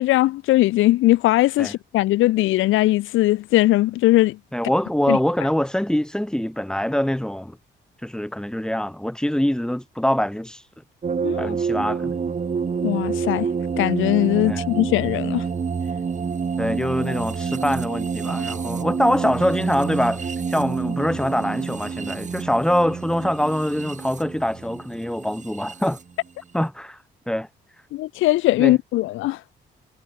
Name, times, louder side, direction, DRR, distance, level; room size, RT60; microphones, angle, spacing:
voice 1, 0.0-4.4 5.1-5.2 11.2-11.5 12.8-13.5 13.8-15.4 27.9-29.4, left 17 dB, 85° left, 0.6 m, -19 dB
voice 2, 4.5-7.6 8.0-10.7 11.4-12.1 14.5-14.6 16.6-26.0 26.5-27.0 27.3-27.5 28.6-28.7, equal, 5° left, 4.2 m, -24 dB
sound 1, 11.0-26.0, right 5 dB, 40° right, 2.8 m, -28 dB
cardioid pair, 90°, 20 cm